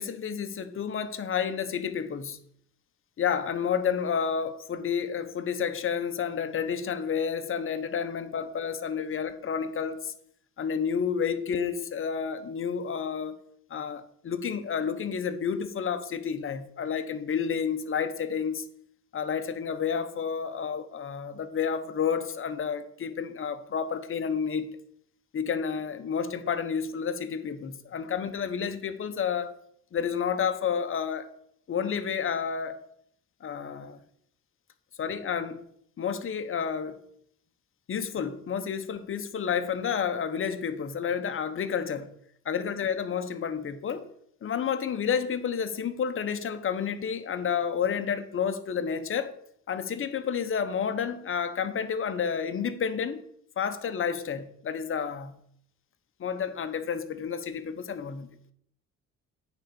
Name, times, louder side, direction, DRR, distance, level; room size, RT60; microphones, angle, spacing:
voice 1, 0.0-2.4 3.2-10.1 10.6-13.4 13.7-18.7 19.1-24.7 25.3-29.5 29.9-31.3 31.7-32.8 33.4-34.0 35.0-35.6 36.0-37.0 37.9-42.1 42.4-44.1 44.4-49.4 49.7-53.2 53.6-55.3 56.2-58.3, left 7 dB, 45° left, 0.9 m, -30 dB
9.2 x 3.9 x 6.9 m
cardioid pair, 90°, 30 cm